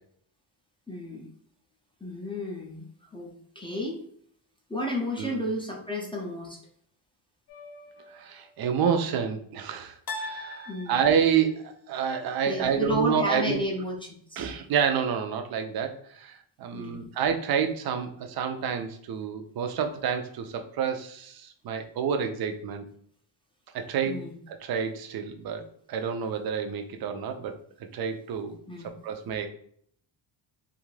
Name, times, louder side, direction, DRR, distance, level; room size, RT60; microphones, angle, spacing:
voice 1, 0.9-1.3 2.0-2.9 3.1-4.0 4.7-6.6 10.7-11.0 12.5-14.0 14.3-14.5 16.7-17.0 24.0-24.4 28.7-28.9, left 1 dB, 10° left, -2 dB, 0.4 m, -32 dB
sound 1, 7.5-8.2 10.1-11.5, left 2 dB, 50° left, 0.7 m, -40 dB
voice 2, 8.1-13.6 14.4-22.9 23.7-24.2 24.5-25.6 25.9-27.5 27.9-28.6 29.0-29.5, right 7 dB, 50° right, 6 dB, 0.5 m, -28 dB
2.5 x 2.4 x 3.1 m, 0.63 s
cardioid pair, 120°, 49 cm